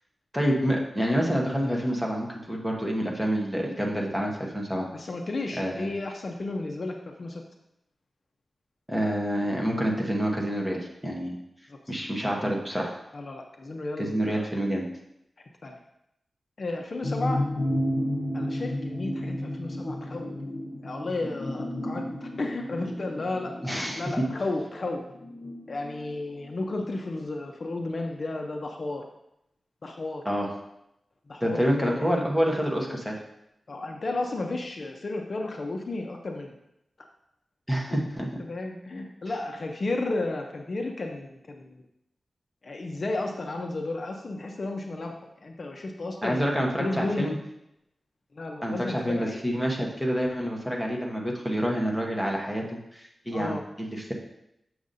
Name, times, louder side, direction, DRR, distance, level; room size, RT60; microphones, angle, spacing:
voice 1, 0.3-4.9 5.6-5.9 8.9-11.4 11.9-12.9 14.0-14.8 23.6-24.0 30.2-30.5 31.4-33.1 37.7-38.3 46.2-47.3 48.6-54.1, equal, 5° right, -1 dB, 0.9 m, -27 dB
voice 2, 4.9-7.4 11.7-11.9 13.1-14.5 15.6-15.8 16.6-17.4 18.3-25.0 25.7-29.0 29.8-30.2 31.3-32.1 33.7-36.6 37.9-38.0 38.4-41.7 42.6-46.4 46.8-47.3 48.3-49.4 53.3-53.6, left 2 dB, 45° left, 2 dB, 0.5 m, -33 dB
sound 1, 17.0-26.9 27.2-27.3, left 1 dB, 75° left, 0.8 m, -32 dB
6.9 x 6.3 x 2.6 m, 0.82 s
wide cardioid pair, 160°, 0 cm